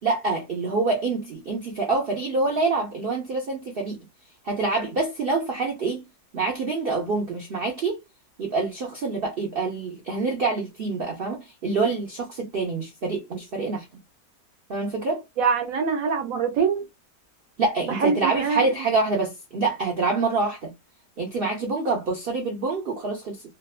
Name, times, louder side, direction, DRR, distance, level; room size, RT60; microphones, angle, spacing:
voice 1, 0.0-4.0 4.4-6.0 6.3-8.0 8.4-13.9 14.7-15.2 17.6-20.7 21.2-23.4, right 3 dB, 90° right, 0.5 m, -26 dB
voice 2, 15.4-16.8 17.9-18.7, right 5 dB, 65° right, 0.9 m, -24 dB
2.8 x 2.3 x 2.3 m
omnidirectional pair, 1.8 m